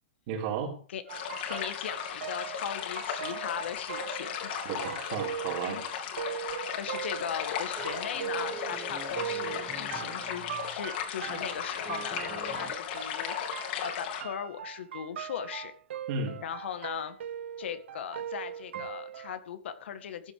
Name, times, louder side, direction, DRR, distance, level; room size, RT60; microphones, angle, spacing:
voice 1, 0.3-0.8 4.6-5.8 12.6-12.7 16.1-16.4, right 5 dB, 45° right, 0 dB, 4.6 m, -34 dB
sound 1, 1.1-14.2, left 8 dB, 55° left, 3.5 m, -36 dB
sound 2, 1.1-19.4, right 9 dB, 80° right, 0.7 m, -40 dB
voice 2, 1.5-4.7 5.6-5.8 6.3-6.5 6.7-15.7 16.4-17.2 17.6-20.3, left 9 dB, 75° left, 9 dB, 1.9 m, -39 dB
sound 3, 7.7-10.9 11.3-12.8, right 9 dB, 20° right, 1.3 m, -46 dB
15.0 x 9.0 x 5.0 m, 0.43 s
hypercardioid pair, 155°, 6 cm